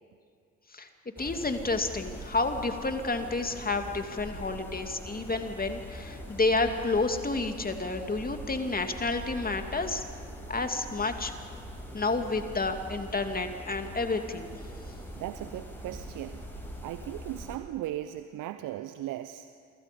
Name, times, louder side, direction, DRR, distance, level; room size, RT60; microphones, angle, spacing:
voice 1, 1.2-10.0 10.5-11.3 11.9-14.5, left 3 dB, 25° left, 6 dB, 2.6 m, -30 dB
sound 1, 1.2-17.6, equal, 5° left, 6.7 m, -43 dB
voice 2, 15.1-16.4 16.8-19.5, right 13 dB, 60° right, 11 dB, 1.0 m, -37 dB
29.0 x 24.5 x 5.4 m, 2.2 s
hypercardioid pair, 50°, 36 cm